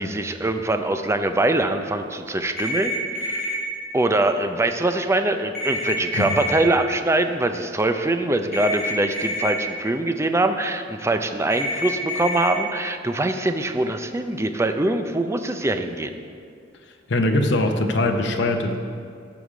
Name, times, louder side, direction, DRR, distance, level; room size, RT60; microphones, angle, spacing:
voice 1, 0.0-3.5 3.9-16.1, right 2 dB, 15° right, 7 dB, 0.5 m, -23 dB
sound 1, 2.6-3.6 5.5-6.5 8.5-9.5 11.5-12.5, left 1 dB, ahead, 1.7 m, -27 dB
voice 2, 17.1-18.8, left 1 dB, 65° left, 4 dB, 0.8 m, -22 dB
14.5 x 4.9 x 5.0 m, 2.3 s
head